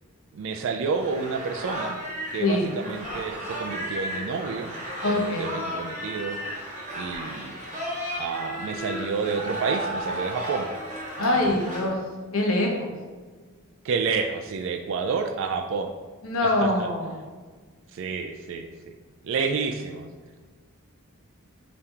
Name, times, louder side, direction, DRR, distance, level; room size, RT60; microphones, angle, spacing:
voice 1, 0.3-2.0 2.3-4.8 5.1-6.4 7.0-7.6 8.2-10.7 11.2-11.5 13.8-15.9 16.4-16.9 17.9-18.9 19.2-20.1, right 5 dB, 60° right, 5 dB, 0.3 m, -29 dB
sound 1, 1.0-11.9, equal, 35° right, 1.1 m, -34 dB
voice 2, 5.0-5.5 11.2-12.0 12.3-12.9 16.2-17.1, left 1 dB, 70° left, 0 dB, 0.9 m, -24 dB
5.2 x 2.8 x 3.5 m, 1.4 s
head